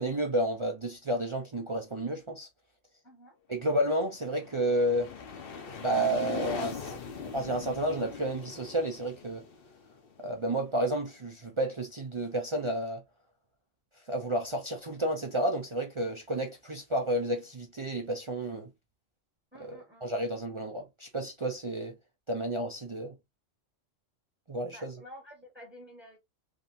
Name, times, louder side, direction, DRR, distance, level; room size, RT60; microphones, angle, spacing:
voice 1, 0.0-2.5 3.5-5.1 5.8-6.9 7.2-9.4 10.2-13.0 14.1-18.7 19.6-21.9 22.3-23.1 24.5-24.9, right 1 dB, 40° right, 0.4 m, -31 dB
voice 2, 3.0-3.4 19.5-20.1 24.7-26.2, equal, 10° right, 1.1 m, -50 dB
sound 1, 4.0-10.7, left 5 dB, 50° left, 0.9 m, -41 dB
3.5 x 2.7 x 2.5 m
omnidirectional pair, 1.3 m